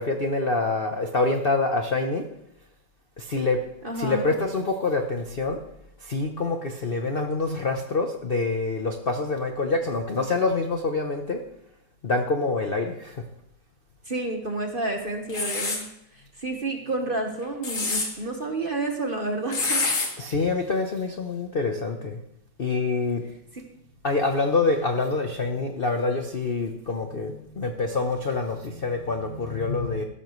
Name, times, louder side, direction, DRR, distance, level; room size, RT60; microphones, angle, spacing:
voice 1, 0.0-2.2 3.2-3.6 3.9-5.6 6.0-11.4 12.0-13.2 20.2-22.2 22.6-23.2 24.0-30.0, left 3 dB, 55° left, 4 dB, 0.6 m, -26 dB
voice 2, 3.8-4.3 14.0-15.8 16.1-19.9, right 2 dB, 35° right, 3 dB, 1.1 m, -30 dB
sound 1, 15.3-15.8 17.4-18.1 19.5-20.1, left 3 dB, 75° left, 3.1 m, -26 dB
16.0 x 12.5 x 3.2 m, 0.78 s
omnidirectional pair, 2.3 m